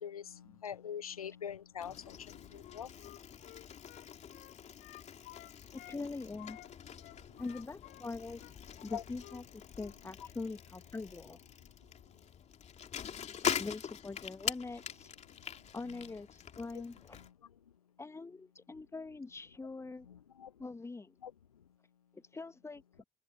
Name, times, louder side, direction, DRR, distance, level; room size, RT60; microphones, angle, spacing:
voice 1, 0.0-2.9 8.9-9.0 20.4-20.5 21.2-21.3, left 8 dB, 80° left, 0.8 m, -43 dB
Bicycle, 1.8-17.3, left 8 dB, 40° left, 2.6 m, -44 dB
Wind instrument woodwind instrument, 2.6-6.0 6.4-9.5 9.7-10.0, left 18 dB, 55° left, 6.1 m, -55 dB
voice 2, 5.7-6.6 7.4-8.4 8.8-11.4 13.6-15.1 15.7-17.2 18.0-20.1 20.6-21.2 22.1-23.0, left 3 dB, 15° left, 1.2 m, -43 dB
open air
figure-of-eight pair, 55°, 18 cm